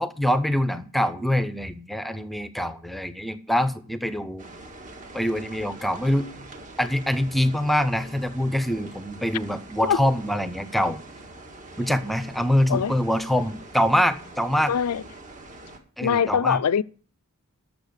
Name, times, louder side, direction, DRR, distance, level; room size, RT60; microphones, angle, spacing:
voice 1, 0.0-4.5 5.1-6.3 6.8-11.0 11.8-14.7 16.0-16.6, equal, ahead, 0.7 m, -24 dB
sound 1, 4.4-15.8, right 2 dB, 35° right, 1.8 m, -44 dB
voice 2, 14.7-15.0 16.0-16.8, left 7 dB, 85° left, 0.5 m, -22 dB
12.0 x 7.0 x 6.5 m
head